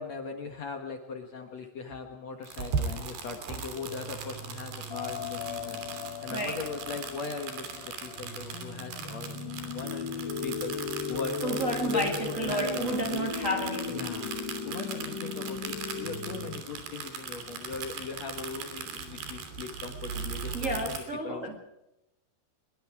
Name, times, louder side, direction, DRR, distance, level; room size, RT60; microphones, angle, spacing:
voice 1, 0.0-5.8 6.2-10.7 11.1-13.3 13.9-14.3 14.7-21.6, left 5 dB, 55° left, 4 dB, 2.2 m, -39 dB
sound 1, 2.4-21.0, right 5 dB, 75° right, 5.0 m, -39 dB
sound 2, 3.7-16.6, left 5 dB, 40° left, 1.9 m, -37 dB
voice 2, 6.3-6.6 11.4-14.1 20.5-21.6, right 1 dB, 25° right, 2 dB, 1.9 m, -31 dB
24.0 x 22.5 x 4.8 m, 0.94 s
omnidirectional pair, 4.6 m